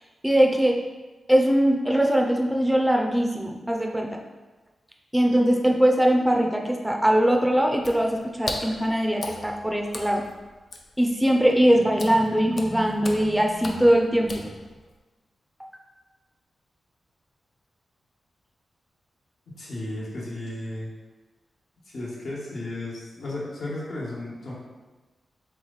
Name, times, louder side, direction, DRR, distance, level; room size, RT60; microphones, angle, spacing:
voice 1, 0.2-0.8 1.3-4.1 5.1-10.2 11.0-14.4, equal, 5° right, 1 dB, 0.5 m, -21 dB
Water / Splash splatter, 7.7-15.0, left 2 dB, 50° left, 0.5 m, -39 dB
voice 2, 19.5-20.9 21.8-24.5, left 1 dB, 70° left, -6 dB, 1.3 m, -34 dB
3.7 x 3.1 x 3.9 m, 1.2 s
wide cardioid pair, 100°, 0 cm